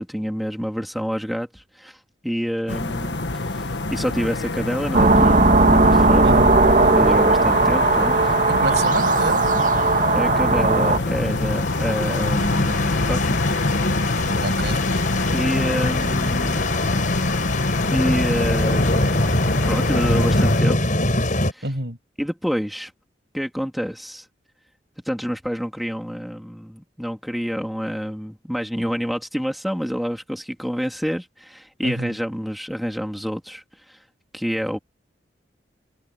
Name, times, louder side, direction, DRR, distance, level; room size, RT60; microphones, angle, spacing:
voice 1, 0.0-2.0 2.2-3.2 3.5-6.5 6.9-8.3 10.1-13.4 15.3-16.6 17.9-19.4 19.7-21.0 21.5-21.7 22.2-22.9 23.3-24.3 25.0-34.0 34.3-34.8, equal, ahead, 2.7 m, -28 dB
sound 1, 2.7-20.6, left 2 dB, 80° left, 1.6 m, -25 dB
sound 2, 4.9-11.0, right 3 dB, 45° right, 2.3 m, -17 dB
voice 2, 8.5-9.5 14.4-14.8 21.6-22.0 31.8-32.1, right 2 dB, 70° right, 7.5 m, -27 dB
sound 3, 11.2-21.5, left 2 dB, 45° left, 6.1 m, -25 dB
head